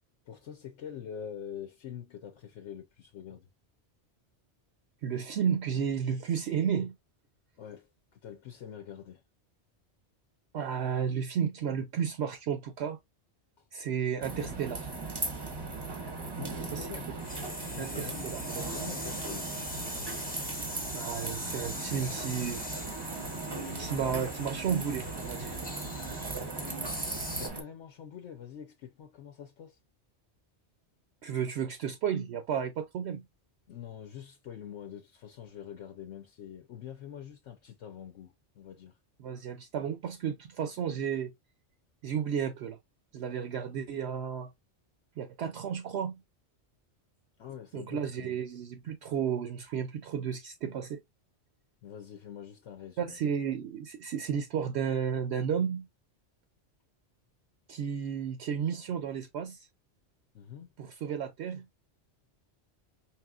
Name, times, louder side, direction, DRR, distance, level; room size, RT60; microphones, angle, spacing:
voice 1, 0.3-3.5 7.6-9.2 13.6-13.7 14.3-14.6 16.4-17.1 17.7-18.3 18.6-19.5 27.4-29.8 33.7-39.0 47.4-48.4 51.8-53.2 60.3-60.7, left 9 dB, 80° left, 1.0 m, -45 dB
voice 2, 5.0-6.9 10.5-13.0 13.7-14.9 16.7-16.9 17.8-18.6 20.9-22.6 23.6-25.6 31.2-33.2 39.2-41.3 42.0-42.8 43.1-44.5 45.2-46.2 47.7-51.0 53.0-55.9 57.7-59.6 60.8-61.7, right 7 dB, 70° right, 0.8 m, -32 dB
sound 1, 14.2-27.6, right 3 dB, 25° right, 0.7 m, -38 dB
sound 2, 17.2-27.5, left 1 dB, 10° left, 0.7 m, -41 dB
4.7 x 2.9 x 2.3 m
omnidirectional pair, 1.2 m